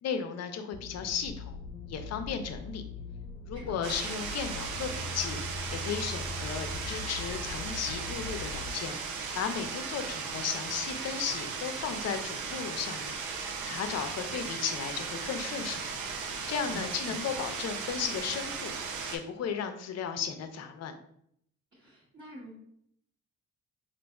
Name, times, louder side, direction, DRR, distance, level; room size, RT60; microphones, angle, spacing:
voice 1, 0.0-1.6 1.9-2.8 3.5-5.4 5.7-9.0 9.3-13.2 13.7-15.8 16.5-18.7 19.1-20.9, left 7 dB, 60° left, 7 dB, 0.5 m, -35 dB
sound 1, 0.7-8.7, left 3 dB, 20° left, 1.0 m, -41 dB
voice 2, 3.5-3.9 16.6-17.2 21.7-22.6, right 1 dB, 40° right, -8 dB, 1.1 m, -46 dB
sound 2, 3.8-19.2, right 5 dB, 80° right, 0.6 m, -37 dB
4.0 x 2.5 x 2.3 m, 0.70 s
cardioid pair, 90°, 30 cm